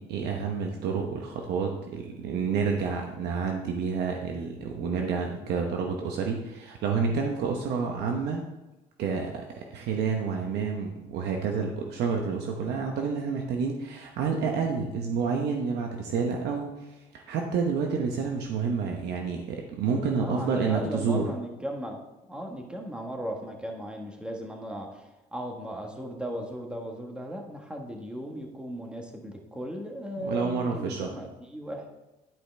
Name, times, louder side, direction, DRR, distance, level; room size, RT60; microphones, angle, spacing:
voice 1, 0.0-8.4 9.0-21.3 30.2-31.1, right 5 dB, 75° right, 2 dB, 1.0 m, -29 dB
voice 2, 20.1-22.0 22.3-31.9, equal, 5° right, 1 dB, 1.4 m, -36 dB
11.5 x 5.0 x 3.4 m, 1.0 s
cardioid pair, 110°, 17 cm